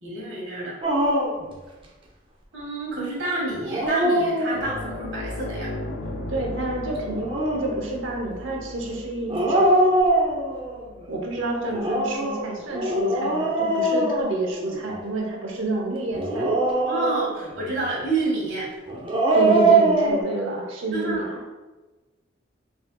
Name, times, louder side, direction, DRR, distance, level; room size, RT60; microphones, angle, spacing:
voice 1, 0.0-0.8 2.5-5.7 16.8-18.7 20.9-21.2, right 2 dB, 65° right, -5 dB, 1.5 m, -29 dB
Dog, 0.8-1.5 3.5-4.9 7.0-7.8 9.3-10.8 11.7-14.9 16.1-17.5 18.9-20.2, right 2 dB, 25° right, 0.6 m, -22 dB
sound 1, 4.5-13.5 13.8-14.0 16.0-16.1, left 1 dB, 50° left, 0.4 m, -37 dB
voice 2, 6.3-9.8 11.1-16.5 19.3-21.4, right 2 dB, 85° right, -1 dB, 0.9 m, -29 dB
5.5 x 2.8 x 2.3 m, 1.2 s
head